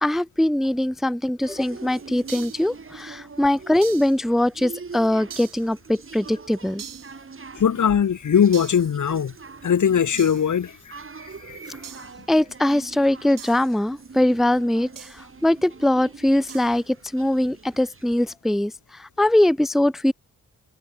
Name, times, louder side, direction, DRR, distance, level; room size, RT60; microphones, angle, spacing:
voice 1, 0.0-6.8 12.3-20.1, left 1 dB, ahead, 0.4 m, -22 dB
sound 1, 1.4-18.3, right 4 dB, 40° right, 6.8 m, -43 dB
sound 2, 2.3-2.7 3.8-4.2 5.3-5.7 6.8-7.2 8.5-8.9 10.2-10.5 11.8-12.2 13.4-13.7 15.0-15.2 16.5-16.8, right 8 dB, 80° right, 2.7 m, -41 dB
voice 2, 7.6-9.3 9.6-10.7 11.5-11.6, left 8 dB, 65° left, 1.9 m, -20 dB
wide cardioid pair, 130°, 32 cm